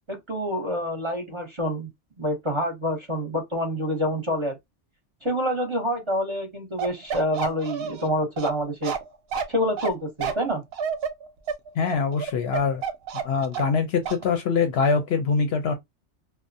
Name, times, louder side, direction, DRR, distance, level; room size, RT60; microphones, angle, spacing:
voice 1, 0.1-1.9 2.2-4.6 5.2-8.9 9.5-10.6, equal, 30° right, 0.7 m, -27 dB
Bark, 6.8-13.8 14.1-14.2, right 7 dB, 65° right, 0.7 m, -30 dB
voice 2, 11.8-12.8 13.2-15.7, left 5 dB, 65° left, 0.7 m, -23 dB
2.4 x 2.0 x 2.6 m
omnidirectional pair, 1.2 m